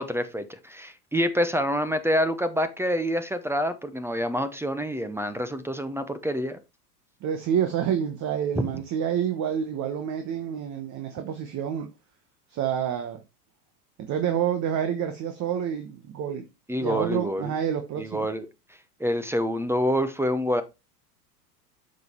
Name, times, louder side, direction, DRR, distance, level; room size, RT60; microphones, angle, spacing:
voice 1, 0.0-6.6 8.6-8.7 16.7-17.5 18.0-18.5 19.0-20.6, equal, 5° right, 0.8 m, -27 dB
voice 2, 7.2-11.9 12.5-13.2 14.0-16.5 16.8-18.3, right 9 dB, 35° right, 1.2 m, -28 dB
7.8 x 5.4 x 4.4 m
hypercardioid pair, 95°, 50 cm